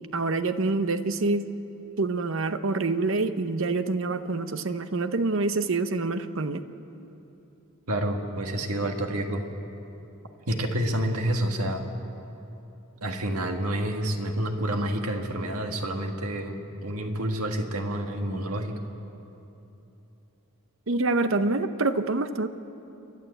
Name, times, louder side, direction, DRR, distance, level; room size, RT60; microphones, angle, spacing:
voice 1, 0.1-1.5 2.0-6.6 20.9-22.5, right 3 dB, 60° right, 10 dB, 0.8 m, -26 dB
voice 2, 7.9-9.4 10.5-11.9 13.0-18.8, right 1 dB, 85° right, 4 dB, 1.8 m, -28 dB
29.5 x 11.0 x 8.0 m, 3.0 s
head